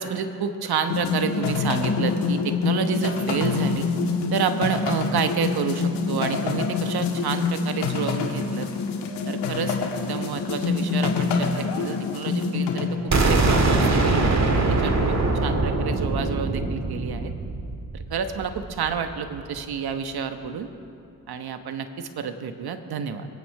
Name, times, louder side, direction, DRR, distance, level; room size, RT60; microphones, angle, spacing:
voice 1, 0.0-3.9 4.3-8.7 9.3-14.2 14.5-15.1 15.4-17.3 17.9-20.7 21.3-23.3, right 6 dB, 65° right, 8 dB, 1.3 m, -29 dB
sound 1, 0.9-12.9, left 5 dB, 80° left, 1.8 m, -26 dB
sound 2, 13.1-18.9, right 2 dB, 40° right, 2.1 m, -22 dB
23.0 x 9.2 x 4.8 m, 2.5 s
supercardioid pair, 50°, 40 cm